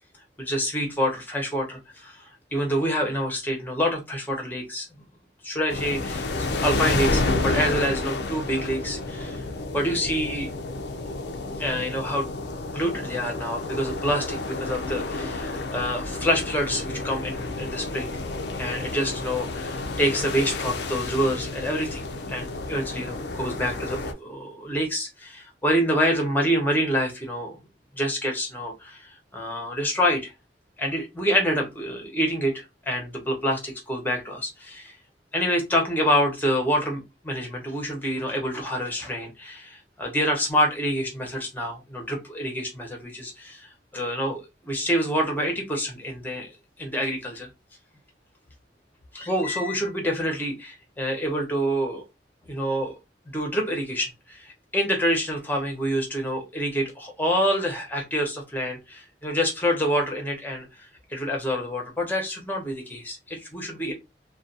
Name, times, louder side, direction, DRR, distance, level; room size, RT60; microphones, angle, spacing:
voice 1, 0.4-4.9 5.4-9.4 9.7-10.5 11.6-12.3 12.7-18.1 18.6-27.6 27.9-30.3 30.8-32.5 32.9-35.0 35.3-46.5 46.8-47.5 49.1-52.0 52.4-53.0 53.3-63.9, equal, 10° left, 1 dB, 0.8 m, -27 dB
sound 1, 5.7-24.1, left 2 dB, 65° left, 0.4 m, -30 dB
2.4 x 2.3 x 2.6 m, 0.23 s
head